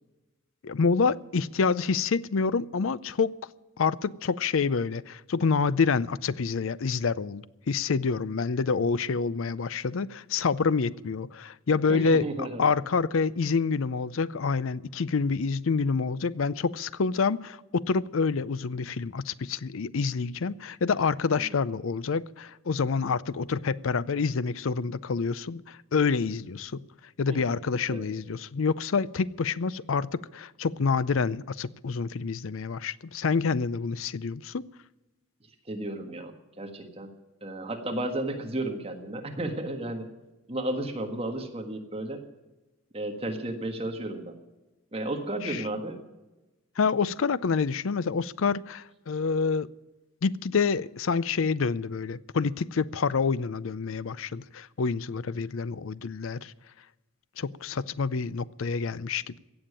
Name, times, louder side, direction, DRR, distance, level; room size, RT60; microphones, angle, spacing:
voice 1, 0.6-3.3 3.8-12.2 12.6-26.8 27.2-34.6 45.4-45.7 46.8-49.7 50.2-56.5 57.4-59.4, left 5 dB, 70° left, 0.5 m, -27 dB
voice 2, 11.9-12.6 27.3-27.4 27.9-28.0 35.7-37.1 37.4-40.1 40.5-42.2 42.9-44.3 44.9-46.0, right 1 dB, 25° right, 1.6 m, -33 dB
16.5 x 7.2 x 9.8 m
head